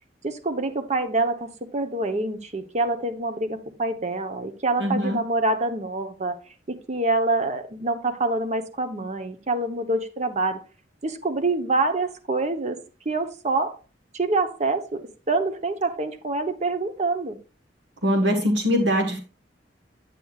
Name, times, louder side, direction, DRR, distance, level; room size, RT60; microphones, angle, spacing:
voice 1, 0.2-6.4 6.7-10.6 11.0-12.8 13.0-13.8 14.1-17.4, right 2 dB, 40° right, 0.9 m, -26 dB
voice 2, 4.8-5.2 18.0-19.2, equal, 70° right, 1.4 m, -22 dB
9.2 x 9.0 x 2.4 m
head